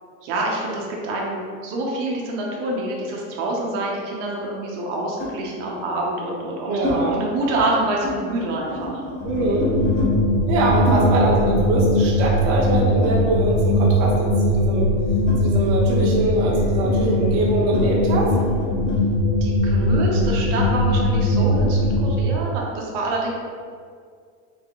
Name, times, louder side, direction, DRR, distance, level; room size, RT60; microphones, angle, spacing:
voice 1, 0.2-9.0 19.4-23.3, right 2 dB, 55° right, -2 dB, 1.0 m, -26 dB
sound 1, 2.3-3.9 5.2-5.4 6.2-7.0 7.3-7.7 7.9-10.1 10.9-13.7 14.0-19.0, left 1 dB, 10° left, 1.2 m, -32 dB
voice 2, 6.7-7.2 9.2-9.7 10.5-14.9 15.4-18.3, right 2 dB, 40° right, -3 dB, 0.6 m, -23 dB
sound 2, 9.2-22.3, left 1 dB, 85° left, 1.1 m, -20 dB
3.7 x 3.7 x 3.7 m, 2.1 s
supercardioid pair, 170°, 42 cm